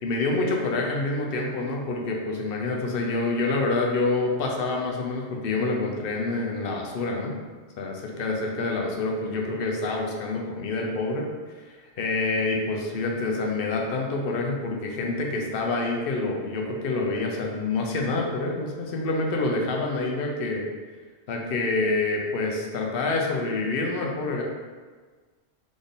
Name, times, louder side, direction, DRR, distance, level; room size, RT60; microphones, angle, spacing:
voice 1, 0.0-7.3 7.8-11.3 11.6-11.7 12.0-20.7 21.3-24.4, left 3 dB, 60° left, 0 dB, 0.9 m, -27 dB
3.7 x 3.5 x 4.0 m, 1.4 s
omnidirectional pair, 1.1 m